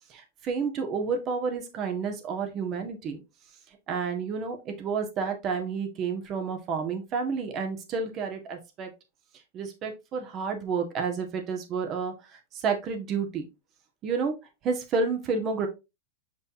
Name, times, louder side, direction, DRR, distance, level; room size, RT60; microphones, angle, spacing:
voice 1, 0.1-3.2 3.9-8.9 9.5-12.1 12.5-13.5 14.0-14.3 14.6-15.7, right 5 dB, 35° right, 4 dB, 1.6 m, -30 dB
6.6 x 5.3 x 2.7 m, 0.25 s
figure-of-eight pair, 100°, 0 cm